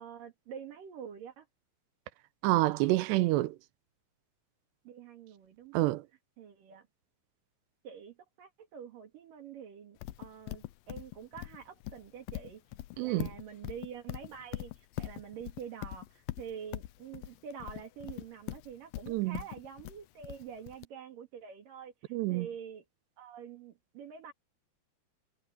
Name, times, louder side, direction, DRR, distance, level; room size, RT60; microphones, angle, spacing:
voice 1, 0.0-1.5 4.8-6.0 6.4-6.9 7.8-12.6 13.0-22.9 23.2-24.3, right 7 dB, 60° right, 3.4 m, -46 dB
voice 2, 2.4-3.6 5.7-6.0 13.0-13.3 19.1-19.4 22.1-22.5, right 18 dB, 85° right, 2.9 m, -27 dB
Livestock farm animals working animals, 10.0-20.8, left 17 dB, 85° left, 2.0 m, -41 dB
omnidirectional pair, 4.8 m